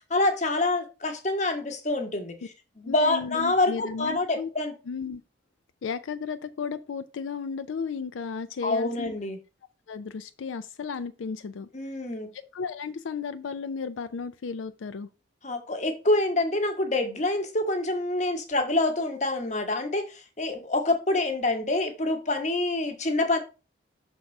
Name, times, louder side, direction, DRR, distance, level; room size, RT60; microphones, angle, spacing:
voice 1, 0.1-2.4 2.8-4.7 8.6-9.4 11.7-12.3 15.4-20.1 20.4-23.4, left 2 dB, 35° left, 1.0 m, -26 dB
voice 2, 2.8-4.5 4.9-5.2 5.8-9.1 9.9-11.7 12.5-15.1, left 5 dB, 85° left, 0.4 m, -34 dB
5.9 x 3.6 x 5.3 m
head